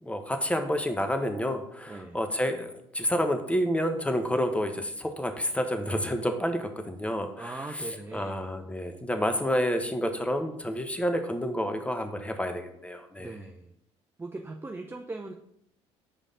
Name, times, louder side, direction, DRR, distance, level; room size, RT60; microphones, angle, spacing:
voice 1, 0.0-13.3, equal, 10° left, 7 dB, 0.9 m, -29 dB
voice 2, 1.9-2.2 7.4-8.6 13.2-13.7 14.2-15.3, right 2 dB, 15° right, 2 dB, 0.6 m, -40 dB
5.5 x 5.0 x 3.7 m, 0.76 s
hypercardioid pair, 60°, 15 cm